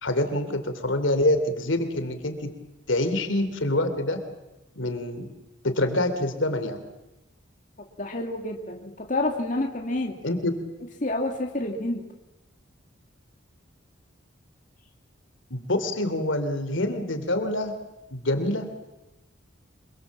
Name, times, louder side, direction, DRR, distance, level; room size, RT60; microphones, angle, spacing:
voice 1, 0.0-2.5 2.9-4.2 4.8-5.3 5.6-6.8 10.2-10.6 15.5-17.8 18.1-18.8, left 1 dB, 75° left, 8 dB, 3.0 m, -26 dB
voice 2, 8.0-10.2 11.0-12.0, left 2 dB, 40° left, 2 dB, 2.3 m, -28 dB
26.0 x 23.5 x 7.4 m, 0.98 s
head